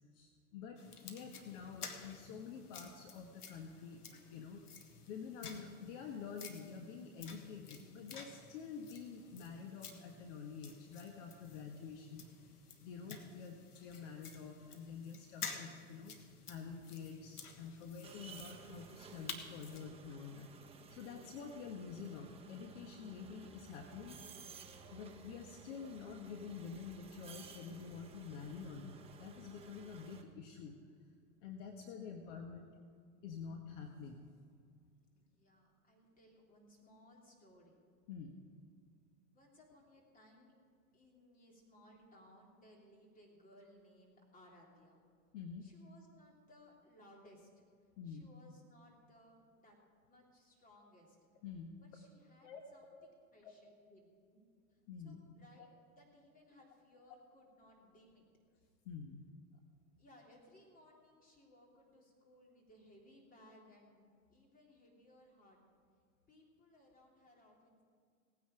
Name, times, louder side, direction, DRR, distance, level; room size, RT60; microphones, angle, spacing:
voice 1, 0.1-4.0 4.3-4.7 5.1-12.2 12.8-16.1 16.5-24.2 24.9-30.8 31.4-32.7 33.2-34.2 38.1-38.3 45.3-45.7 48.0-48.3 51.4-51.7 52.4-52.6 52.9-53.1 53.4-53.5 54.9-55.2 55.6-55.7 58.8-59.3, left 6 dB, 55° left, 4 dB, 1.4 m, -48 dB
sound 1, 0.8-19.9, left 5 dB, 85° left, 1.6 m, -52 dB
sound 2, 18.0-30.2, right 5 dB, 15° right, 1.2 m, -56 dB
voice 2, 35.1-37.9 39.3-40.5 40.9-45.1 45.6-47.6 48.0-49.8 50.0-51.2 51.8-54.4 54.7-55.7 55.9-58.2 59.5-59.6 60.0-65.6 66.3-67.8, left 1 dB, 20° left, -1 dB, 3.4 m, -63 dB
18.0 x 9.5 x 5.1 m, 2.2 s
hypercardioid pair, 105°, 45 cm